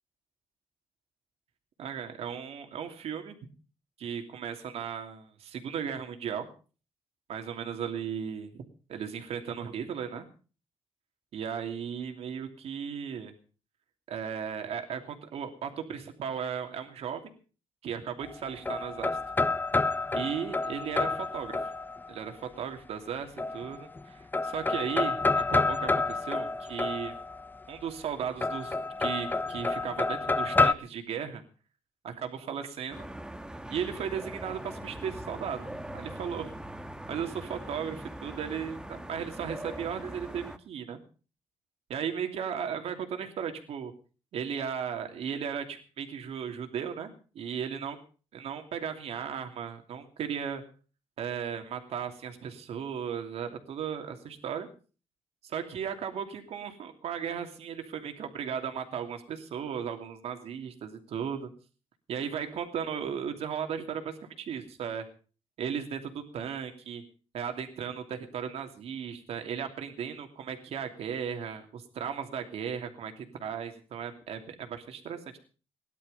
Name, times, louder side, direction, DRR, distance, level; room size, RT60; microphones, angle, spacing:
voice 1, 1.8-3.4 4.0-6.5 7.3-8.6 8.9-10.3 11.3-13.3 14.1-17.2 17.8-19.2 20.1-21.7 22.1-27.1 27.7-31.4 32.0-33.1 33.7-35.7 35.9-36.5 37.1-41.0 41.9-43.9 44.3-48.0 48.3-50.6 51.2-54.7 55.4-61.5 62.1-65.0 65.6-67.0 67.3-75.4, right 7 dB, 75° right, 5 dB, 2.8 m, -36 dB
sound 1, 18.2-22.2 23.4-24.0 24.3-27.5 28.4-30.7, left 3 dB, 15° left, 0.7 m, -29 dB
sound 2, 32.9-40.6, right 1 dB, 5° right, 1.3 m, -41 dB
18.0 x 11.5 x 5.4 m, 0.38 s
cardioid pair, 85°, 11 cm